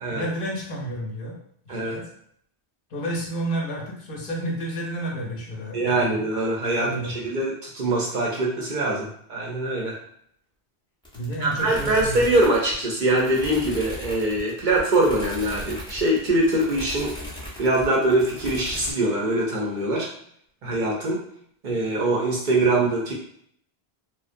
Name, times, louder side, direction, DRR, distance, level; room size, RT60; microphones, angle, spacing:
voice 1, 0.1-1.4 1.6-2.1 2.9-6.2 6.7-7.2 11.1-12.2, right 1 dB, 65° left, -1 dB, 0.7 m, -31 dB
voice 2, 5.7-10.0 11.4-17.1 17.6-20.1 20.6-21.2 21.6-23.1, right 2 dB, 60° right, -2 dB, 0.6 m, -23 dB
sound 1, 11.0-18.9, equal, 10° left, 0.3 m, -38 dB
2.4 x 2.1 x 2.5 m, 0.65 s
omnidirectional pair, 1.1 m